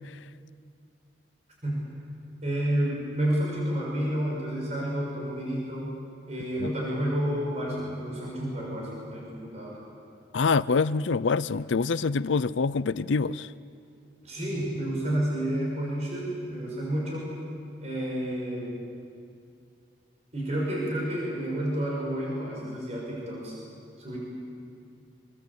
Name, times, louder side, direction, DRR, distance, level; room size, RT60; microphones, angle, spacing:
voice 1, 2.4-5.9 6.3-9.8 14.2-17.3 17.8-18.7 20.3-23.5 24.0-24.2, right 1 dB, 35° right, -4 dB, 6.4 m, -30 dB
voice 2, 10.3-13.5, left 4 dB, 85° left, 17 dB, 0.6 m, -25 dB
27.0 x 23.5 x 8.5 m, 2.4 s
head